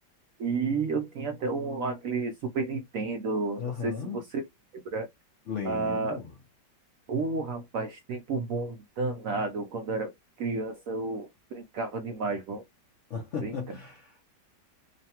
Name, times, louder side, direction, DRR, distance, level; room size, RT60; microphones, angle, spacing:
voice 1, 0.4-4.4 4.9-5.1 5.6-6.2 7.1-10.1 10.4-12.6 13.4-13.5, right 3 dB, 70° right, 0.8 m, -31 dB
voice 2, 3.6-4.2 5.5-6.4 13.1-14.3, left 6 dB, 60° left, 0.8 m, -36 dB
3.1 x 2.2 x 2.8 m
omnidirectional pair, 1.9 m